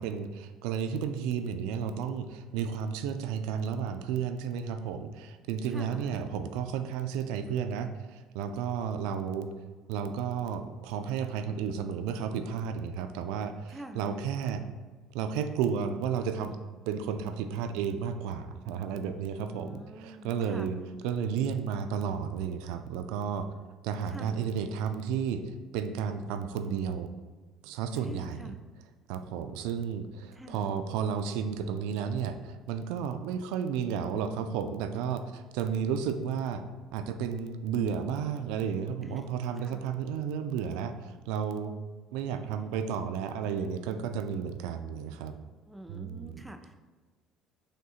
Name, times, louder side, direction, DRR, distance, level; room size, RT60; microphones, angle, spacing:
voice 1, 0.0-9.5 9.9-14.6 15.1-16.6 16.9-23.5 23.8-27.1 27.6-28.5 29.1-36.6 36.9-41.8 42.1-45.4 45.9-46.4, right 7 dB, 75° right, 9 dB, 0.3 m, -32 dB
voice 2, 5.7-6.2 13.7-14.2 19.4-20.7 24.1-24.5 27.9-28.6 30.3-30.7 39.0-39.3 39.6-39.9 45.7-46.7, right 1 dB, 10° right, 6 dB, 0.5 m, -45 dB
6.4 x 2.7 x 2.4 m, 1.4 s
hypercardioid pair, 60°, 0 cm